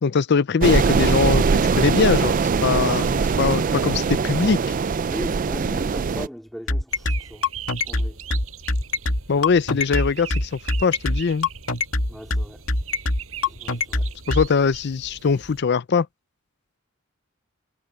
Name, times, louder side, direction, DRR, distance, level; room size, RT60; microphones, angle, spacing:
voice 1, 0.0-2.3 2.6-4.6 9.3-11.5 14.3-16.1, left 5 dB, 55° left, 0.5 m, -21 dB
sound 1, 0.6-6.3, right 5 dB, 40° right, 0.4 m, -21 dB
voice 2, 5.1-7.4 7.9-8.2 12.1-12.6 13.5-14.1, equal, ahead, 3.3 m, -37 dB
sound 2, 6.7-14.5, left 2 dB, 80° left, 2.4 m, -23 dB
sound 3, 6.9-15.6, right 8 dB, 90° right, 6.5 m, -40 dB
head